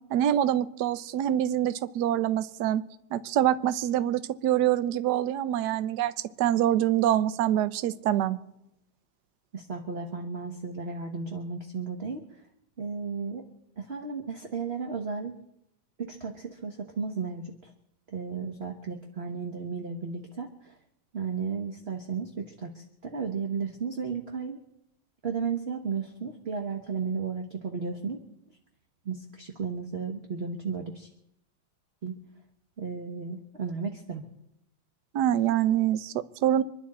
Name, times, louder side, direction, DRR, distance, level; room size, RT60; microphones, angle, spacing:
voice 1, 0.1-2.8 3.1-6.1 6.4-8.4 35.1-36.6, right 11 dB, 65° right, 14 dB, 1.2 m, -25 dB
voice 2, 9.5-12.2 12.8-13.4 13.8-15.3 16.0-17.7 18.1-20.7 21.1-24.6 25.2-28.2 29.0-31.1 32.0-32.2 32.8-34.2, right 5 dB, 35° right, 3 dB, 1.2 m, -34 dB
26.0 x 11.0 x 4.3 m, 0.82 s
omnidirectional pair, 2.3 m